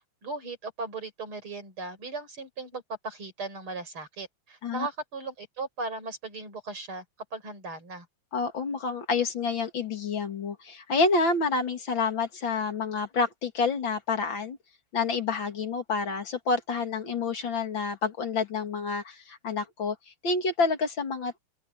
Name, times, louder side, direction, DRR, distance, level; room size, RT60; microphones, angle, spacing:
voice 1, 0.2-7.0 7.3-8.1, right 3 dB, 80° right, 6.5 m, -37 dB
voice 2, 8.3-14.6 14.9-20.0 20.2-21.4, left 4 dB, 65° left, 3.0 m, -28 dB
open air
omnidirectional pair, 2.3 m